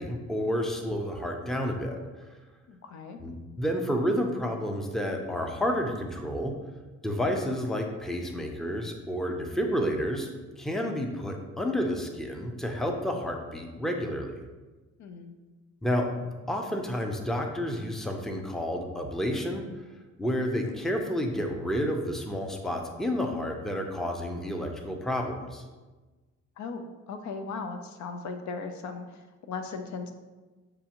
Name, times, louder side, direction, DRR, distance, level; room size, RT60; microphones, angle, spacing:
voice 1, 0.0-2.3 3.2-6.5 7.0-10.3 10.6-14.3 15.8-16.2 16.5-19.6 20.2-25.6, equal, ahead, 3 dB, 0.5 m, -30 dB
voice 2, 2.7-3.2 15.0-15.3 26.6-30.1, left 4 dB, 70° left, 7 dB, 0.5 m, -38 dB
6.7 x 2.6 x 2.8 m, 1.2 s
cardioid pair, 90°, 30 cm